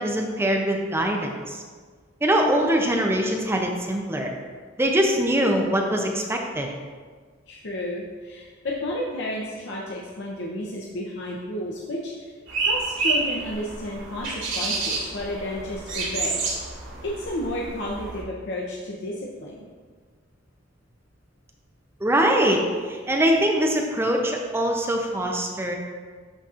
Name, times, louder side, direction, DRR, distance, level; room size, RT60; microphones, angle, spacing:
voice 1, 0.0-1.6 2.2-4.3 4.8-6.7 22.0-22.6 22.9-25.8, right 1 dB, 15° right, 1 dB, 0.5 m, -23 dB
voice 2, 7.5-12.3 12.7-16.4 17.0-19.2 19.4-19.7, left 1 dB, 65° left, -3 dB, 0.7 m, -32 dB
sound 1, 12.5-18.2, right 3 dB, 85° right, 1.8 m, -29 dB
11.5 x 4.1 x 2.5 m, 1.5 s
head